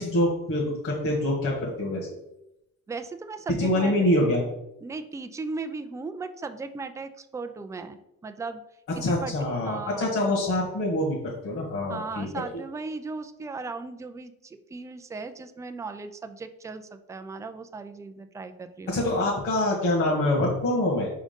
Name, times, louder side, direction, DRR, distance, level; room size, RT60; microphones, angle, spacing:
voice 1, 0.0-2.1 3.5-4.5 8.9-12.3 18.9-21.1, left 1 dB, 45° left, -3 dB, 1.9 m, -25 dB
voice 2, 2.9-4.0 4.8-8.6 9.0-9.3 9.6-10.4 11.9-19.0, right 3 dB, 10° right, 8 dB, 0.4 m, -37 dB
5.1 x 3.8 x 5.1 m, 0.84 s
cardioid pair, 105°, 31 cm